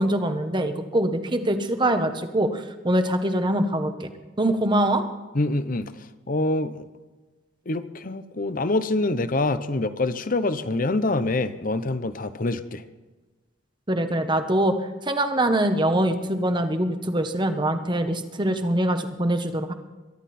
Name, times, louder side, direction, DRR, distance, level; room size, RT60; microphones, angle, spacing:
voice 1, 0.0-4.1 4.4-5.0 13.9-14.7 15.0-19.7, right 1 dB, 25° right, 7 dB, 1.1 m, -23 dB
voice 2, 5.3-5.9 6.3-6.8 7.7-12.8, left 2 dB, 45° left, 12 dB, 0.8 m, -25 dB
23.0 x 11.5 x 4.3 m, 1.2 s
head